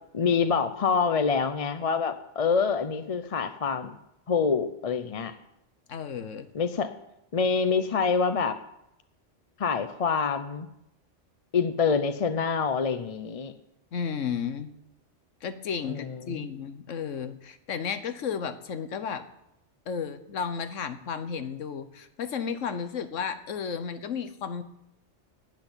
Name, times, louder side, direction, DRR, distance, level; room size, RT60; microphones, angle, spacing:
voice 1, 0.1-4.0 4.3-5.3 6.5-6.9 7.3-8.6 9.6-10.7 11.5-13.5 15.8-16.4, left 5 dB, 40° left, 10 dB, 0.5 m, -26 dB
voice 2, 5.9-6.5 13.9-14.7 15.4-19.2 19.9-24.6, left 6 dB, 90° left, 11 dB, 1.3 m, -33 dB
10.5 x 8.0 x 9.8 m, 0.83 s
omnidirectional pair, 1.2 m